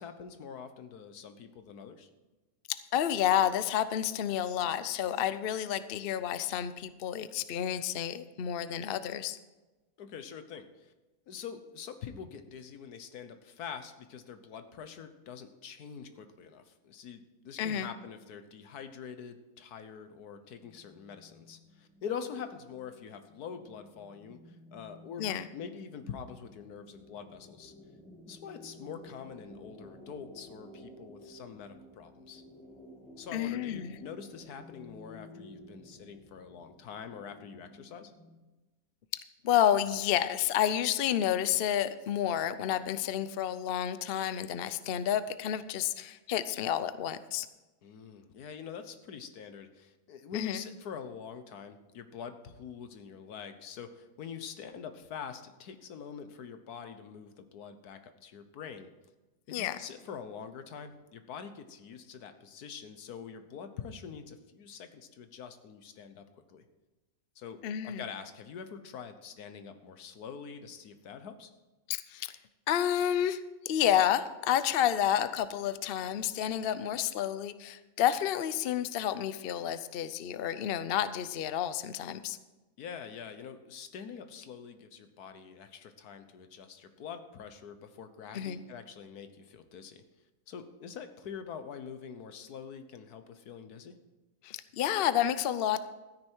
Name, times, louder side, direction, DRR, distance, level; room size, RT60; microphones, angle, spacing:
voice 1, 0.0-2.1 10.0-10.9 11.3-24.4 24.7-25.2 25.5-27.7 28.3-32.4 33.2-38.1 47.8-58.9 59.5-66.6 67.4-71.5 82.8-90.0 90.5-93.9, left 7 dB, 85° left, 9 dB, 1.5 m, -45 dB
voice 2, 2.7-9.4 17.6-17.9 25.2-25.5 33.3-34.0 39.4-47.5 50.3-50.6 59.5-59.8 67.6-68.0 71.9-72.4 72.7-82.4 88.3-88.6 94.4-95.8, left 10 dB, 60° left, 13 dB, 0.6 m, -30 dB
sound 1, 20.6-38.4, left 1 dB, 5° left, 2.2 m, -53 dB
13.5 x 9.8 x 4.6 m, 1.1 s
omnidirectional pair, 1.6 m